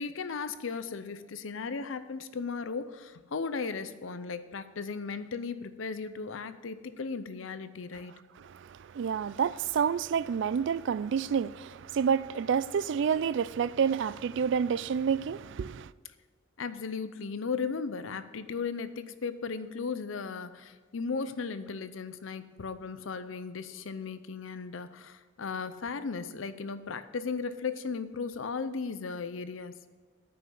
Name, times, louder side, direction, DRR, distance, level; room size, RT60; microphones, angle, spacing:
voice 1, 0.0-8.1 16.6-29.8, left 5 dB, 75° left, 0.6 m, -36 dB
voice 2, 8.4-15.9, right 7 dB, 60° right, 0.3 m, -29 dB
9.4 x 5.8 x 7.7 m
head